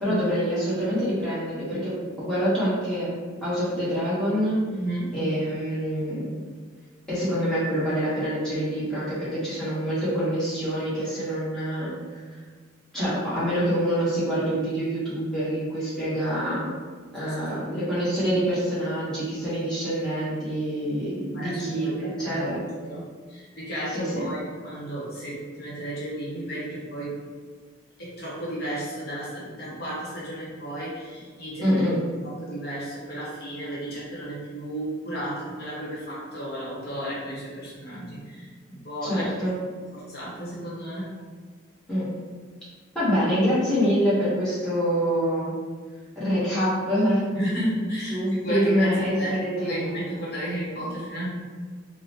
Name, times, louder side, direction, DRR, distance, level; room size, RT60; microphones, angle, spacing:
voice 1, 0.0-1.9 2.2-3.1 3.4-4.6 5.1-6.4 7.1-11.9 12.9-16.7 17.1-22.6 23.9-24.2 31.6-32.0 39.0-39.6 41.9-42.0 42.9-45.5 46.2-47.2 48.1-49.9, equal, 5° left, -12 dB, 1.1 m, -26 dB
voice 2, 4.7-5.2 17.2-17.4 21.3-22.5 22.8-23.0 23.3-27.2 28.0-31.8 32.2-39.3 39.9-41.1 47.3-51.3, right 1 dB, 55° left, -7 dB, 1.0 m, -33 dB
3.7 x 2.1 x 2.9 m, 1.5 s
head